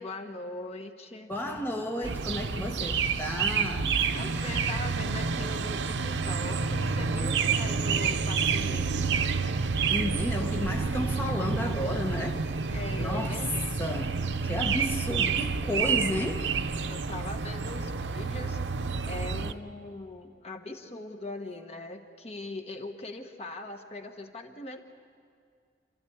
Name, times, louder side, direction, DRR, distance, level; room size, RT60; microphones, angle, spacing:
voice 1, 0.0-1.3 4.1-9.1 12.7-13.6 16.9-18.6 19.1-24.8, left 2 dB, 35° left, 1.2 m, -40 dB
voice 2, 1.3-4.0 9.9-12.5 13.0-13.5 13.8-16.5 19.5-19.6, left 1 dB, 10° left, 1.1 m, -32 dB
sound 1, 2.0-19.5, right 5 dB, 90° right, 0.7 m, -29 dB
28.0 x 13.0 x 8.6 m
head